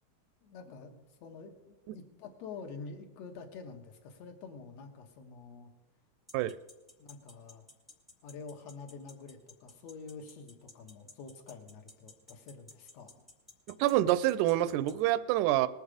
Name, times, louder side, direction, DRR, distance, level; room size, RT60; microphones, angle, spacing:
voice 1, 0.4-5.7 7.0-7.7 8.2-13.3, left 4 dB, 65° left, 4 dB, 2.3 m, -47 dB
sound 1, 6.3-14.9, left 2 dB, ahead, 1.0 m, -53 dB
voice 2, 13.8-15.7, right 14 dB, 85° right, 15 dB, 2.1 m, -26 dB
20.5 x 7.2 x 5.0 m, 1.1 s
omnidirectional pair, 3.5 m